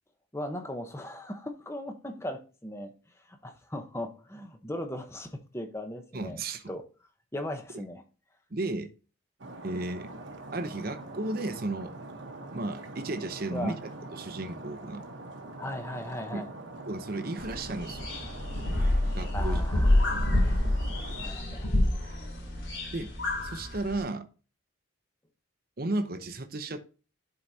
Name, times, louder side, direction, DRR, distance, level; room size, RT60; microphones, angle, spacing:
voice 1, 0.3-2.9 3.3-6.4 6.7-6.8 7.3-8.0 13.5-13.8 15.6-16.5 19.3-20.6 21.2-21.7, left 1 dB, 15° left, 0.9 m, -38 dB
voice 2, 6.1-6.7 8.5-8.9 9.6-10.1 10.5-11.9 12.5-15.0 16.3-16.4 16.9-18.1 19.2-19.9 22.9-23.1 23.4-24.3 25.8-26.8, right 2 dB, 45° right, 0.8 m, -34 dB
Stream, 9.4-21.3, right 2 dB, 65° right, 1.1 m, -44 dB
sound 1, 17.4-24.0, left 1 dB, 65° left, 2.9 m, -28 dB
11.0 x 4.7 x 2.8 m
head